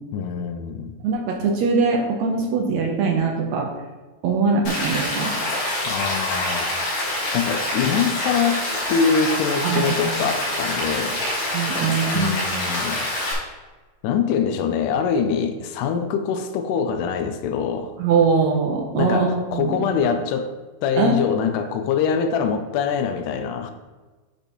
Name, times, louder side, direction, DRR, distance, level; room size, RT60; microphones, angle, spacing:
voice 1, 0.1-0.9 5.9-6.8 7.3-11.3 12.1-13.0 14.0-17.9 18.9-23.7, left 6 dB, 85° left, 8 dB, 1.8 m, -24 dB
voice 2, 1.0-3.7 4.2-5.3 9.6-10.0 11.5-12.3 18.0-19.8 21.0-21.1, right 5 dB, 80° right, 1 dB, 1.6 m, -22 dB
Rain, 4.7-13.3, left 1 dB, 70° left, 3.6 m, -26 dB
10.5 x 5.5 x 3.0 m, 1.2 s
omnidirectional pair, 4.3 m